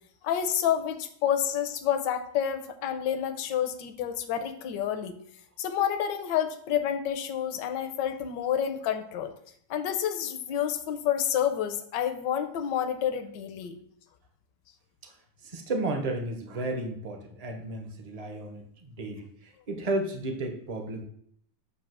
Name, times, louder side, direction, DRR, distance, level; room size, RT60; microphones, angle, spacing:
voice 1, 0.2-5.2 5.6-9.3 9.7-13.8, left 9 dB, 75° left, 7 dB, 1.3 m, -29 dB
voice 2, 15.4-21.0, right 2 dB, 40° right, 3 dB, 0.5 m, -33 dB
8.2 x 2.8 x 6.0 m, 0.66 s
omnidirectional pair, 2.0 m